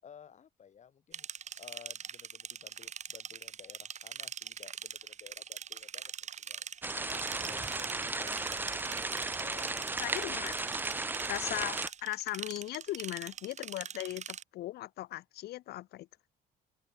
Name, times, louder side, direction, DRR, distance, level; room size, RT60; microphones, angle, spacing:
voice 1, 0.0-1.3 1.6-6.1 6.4-6.7 7.1-8.8 9.4-10.6 11.4-11.7, left 8 dB, 45° left, 6.4 m, -55 dB
sound 1, 1.1-14.4, right 8 dB, 45° right, 2.5 m, -43 dB
sound 2, 6.8-11.9, right 3 dB, 10° right, 0.6 m, -35 dB
voice 2, 10.0-10.7 11.3-11.7 12.0-16.1, left 16 dB, 70° left, 0.9 m, -38 dB
cardioid pair, 110°, 17 cm